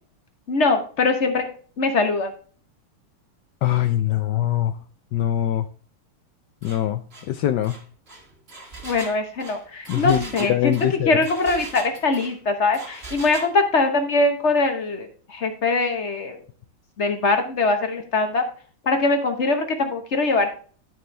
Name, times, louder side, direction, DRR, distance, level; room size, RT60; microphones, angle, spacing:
voice 1, 0.5-1.4 1.8-2.3 8.8-10.7 11.1-16.4 17.0-18.4 18.8-20.5, left 3 dB, 45° left, 6 dB, 1.0 m, -22 dB
voice 2, 3.6-4.7 5.1-5.7 6.6-7.8 9.9-11.2, left 12 dB, 80° left, 10 dB, 1.0 m, -23 dB
Engine, 6.6-6.8 7.1-7.3 7.6-12.4 12.7-13.5, right 3 dB, 30° right, 1.6 m, -40 dB
12.5 x 4.4 x 3.1 m, 0.42 s
omnidirectional pair, 2.4 m